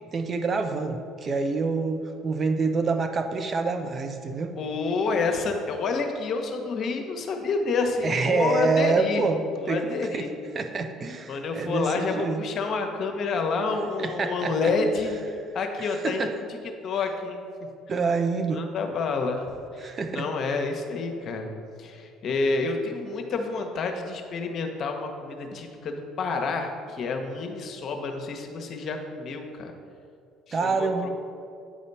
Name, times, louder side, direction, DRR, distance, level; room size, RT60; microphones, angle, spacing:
voice 1, 0.1-4.5 8.0-9.8 10.1-10.3 10.5-12.4 14.0-14.7 15.8-16.3 17.9-18.6 19.8-20.2 30.5-31.1, right 4 dB, 40° right, 6 dB, 0.7 m, -27 dB
voice 2, 4.5-9.3 9.6-10.3 11.3-15.2 15.5-16.6 16.8-17.4 18.5-19.5 19.7-21.5 21.8-29.7 30.5-31.1, left 4 dB, 50° left, 4 dB, 1.0 m, -28 dB
8.6 x 4.2 x 5.4 m, 2.4 s
hypercardioid pair, 60°, 0 cm